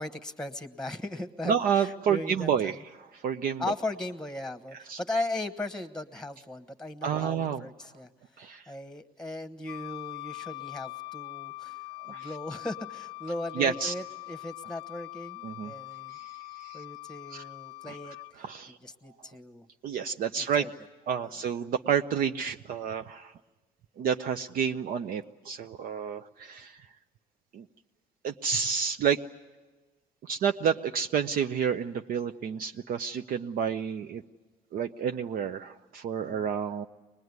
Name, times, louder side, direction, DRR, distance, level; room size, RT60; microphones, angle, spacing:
voice 1, 0.0-2.8 3.6-11.8 12.1-16.2 16.7-18.1 18.8-19.6 20.4-20.7 36.2-36.5, left 2 dB, 5° left, 12 dB, 1.2 m, -37 dB
voice 2, 1.4-3.6 4.9-5.0 7.0-7.7 8.4-8.7 12.1-12.3 13.6-13.9 15.4-15.7 16.1-16.8 17.3-17.4 17.8-18.0 18.4-18.8 19.8-20.7 21.1-23.3 24.0-26.9 27.5-27.7 28.2-29.2 30.2-34.2 34.7-36.9, right 7 dB, 55° right, 6 dB, 0.7 m, -30 dB
Wind instrument woodwind instrument, 9.7-18.3, left 26 dB, 90° left, 0.8 m, -42 dB
23.5 x 20.5 x 9.5 m, 1.3 s
cardioid pair, 110°, 17 cm